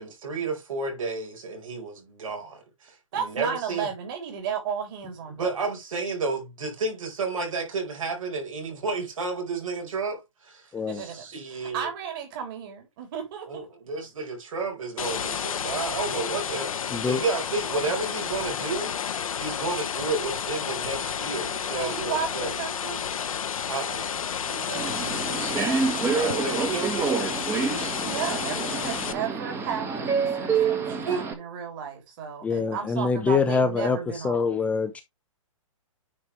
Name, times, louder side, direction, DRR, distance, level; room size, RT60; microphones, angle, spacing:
voice 1, 0.0-3.9 5.3-11.9 13.4-19.0 19.4-22.6 23.7-24.2 25.8-27.3 30.8-31.2, right 3 dB, 75° right, 4.9 m, -32 dB
voice 2, 3.1-5.5 10.9-11.2 11.7-13.7 21.7-23.1 24.5-25.0 28.0-34.5, right 7 dB, 40° right, 3.4 m, -34 dB
voice 3, 10.7-11.0 16.9-17.2 32.4-35.0, left 4 dB, 10° left, 0.5 m, -25 dB
sound 1, 15.0-29.1, left 8 dB, 85° left, 1.0 m, -31 dB
Subway metro underground, 24.7-31.3, right 5 dB, 15° right, 1.2 m, -28 dB
9.4 x 4.6 x 3.3 m
hypercardioid pair, 150°, 17 cm